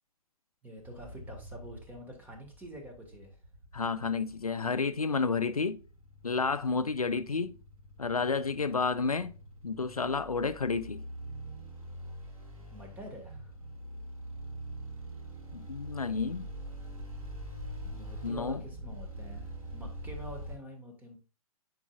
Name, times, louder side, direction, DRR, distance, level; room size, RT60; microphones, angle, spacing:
voice 1, 0.6-3.4 12.7-13.5 17.8-21.2, equal, 10° right, 1.8 m, -47 dB
sound 1, 0.8-20.6, equal, 80° right, 3.3 m, -44 dB
voice 2, 3.7-5.8 6.2-7.6 8.0-9.3 9.6-11.0 15.5-16.5 18.2-18.6, left 4 dB, 85° left, 0.5 m, -30 dB
10.5 x 4.8 x 2.4 m
figure-of-eight pair, 110°, 18 cm